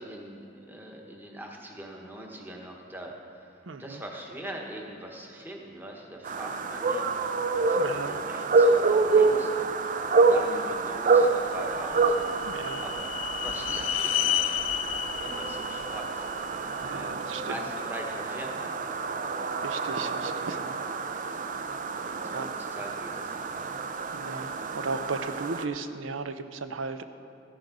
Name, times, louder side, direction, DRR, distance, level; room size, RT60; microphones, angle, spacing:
voice 1, 0.0-3.5 3.8-12.3 12.8-13.1 13.4-14.4 14.9-16.6 16.9-19.3 20.2-20.4 22.0-23.7, right 1 dB, 10° right, 0 dB, 1.2 m, -42 dB
voice 2, 3.7-4.0 7.8-8.2 12.5-12.8 16.8-17.6 19.6-20.8 22.3-22.5 24.1-24.5 24.8-27.0, right 4 dB, 80° right, 10 dB, 0.6 m, -35 dB
sound 1, 6.2-25.6, right 4 dB, 45° right, 0.5 m, -27 dB
sound 2, 11.7-16.9, left 13 dB, 80° left, 0.3 m, -31 dB
14.5 x 11.0 x 4.0 m, 2.9 s
head